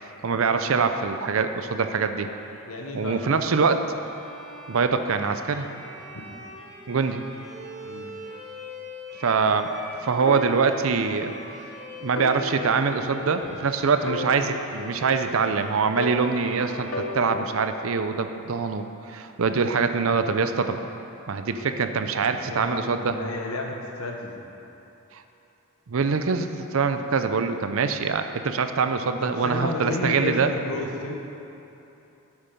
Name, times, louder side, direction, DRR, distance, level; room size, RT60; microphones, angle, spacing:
voice 1, 0.2-2.3 2.9-4.0 4.7-5.7 6.9-7.2 9.2-9.7 10.0-11.3 12.0-20.9 21.3-23.1 25.1-25.2 25.9-30.5, right 5 dB, 65° right, 8 dB, 0.5 m, -24 dB
voice 2, 2.7-3.3 7.8-8.1 22.3-24.4 29.2-31.2, left 2 dB, 80° left, 2 dB, 1.2 m, -32 dB
Bowed string instrument, 3.9-18.0, left 1 dB, ahead, 2.6 m, -43 dB
sound 1, 10.3-11.4 11.7-11.8 12.2-13.7 14.1-15.5 16.0-17.8, left 2 dB, 65° left, 0.8 m, -34 dB
9.0 x 8.2 x 5.4 m, 2.9 s
head